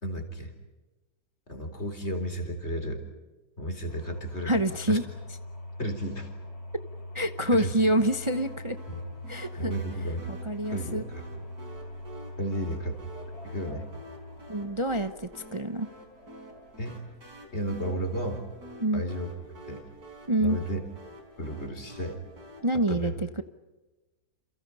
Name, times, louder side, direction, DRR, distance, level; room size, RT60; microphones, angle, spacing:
voice 1, 0.0-0.5 1.5-3.0 3.6-4.6 4.9-5.0 5.8-6.3 7.5-7.7 8.9-9.0 9.6-10.3 10.7-11.2 12.4-13.0 13.4-13.9 16.8-17.0 17.5-18.4 18.9-19.3 19.7-19.9 20.4-20.8 21.4-22.2 22.7-23.1, equal, 40° left, 6 dB, 4.4 m, -33 dB
sound 1, 3.9-22.9, left 1 dB, 65° left, 4.6 m, -44 dB
voice 2, 4.4-5.0 7.1-8.8 9.3-9.7 10.4-11.0 14.5-15.9 18.8-19.0 20.3-20.6 22.6-23.4, right 1 dB, 25° right, 9 dB, 0.8 m, -26 dB
sound 2, 7.8-22.6, right 1 dB, 65° right, 5.3 m, -48 dB
30.0 x 28.5 x 5.6 m, 1.2 s
omnidirectional pair, 1.8 m